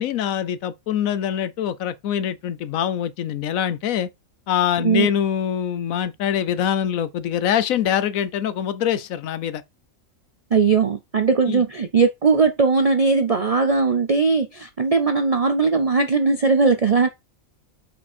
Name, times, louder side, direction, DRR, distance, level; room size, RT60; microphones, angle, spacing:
voice 1, 0.0-4.1 4.5-9.6 11.5-11.6, left 9 dB, 75° left, 1.1 m, -24 dB
voice 2, 10.5-17.1, right 4 dB, 55° right, 0.4 m, -19 dB
6.0 x 5.2 x 4.3 m
omnidirectional pair, 1.5 m